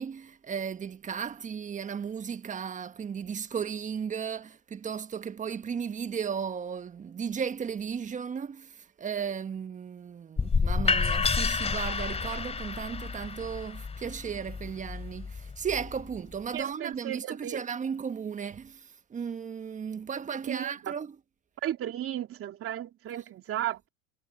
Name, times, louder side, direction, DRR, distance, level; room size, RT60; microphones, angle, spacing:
voice 1, 0.0-21.2 23.1-23.2, right 7 dB, 20° right, 1.3 m, -35 dB
sound 1, 10.4-16.2, left 4 dB, 15° left, 2.8 m, -30 dB
voice 2, 16.5-17.6 20.5-20.9 21.6-23.9, right 12 dB, 35° right, 3.1 m, -34 dB
supercardioid pair, 115°, 39 cm